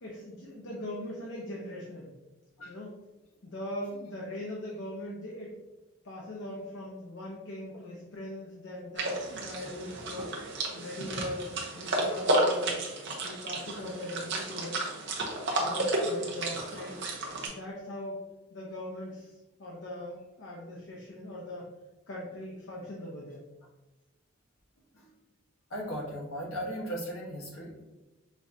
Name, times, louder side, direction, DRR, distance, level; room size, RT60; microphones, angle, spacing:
voice 1, 0.0-2.1 2.7-2.9 3.4-5.5 6.0-10.3 10.7-12.8 13.2-14.9 15.6-17.0 17.5-18.2 18.5-21.7 22.1-23.4, left 1 dB, 60° left, -4 dB, 0.7 m, -40 dB
sound 1, 9.0-17.5, right 2 dB, 55° right, 0.7 m, -32 dB
voice 2, 25.7-27.8, equal, 75° left, -4 dB, 1.3 m, -37 dB
5.2 x 2.4 x 2.7 m, 1.1 s
head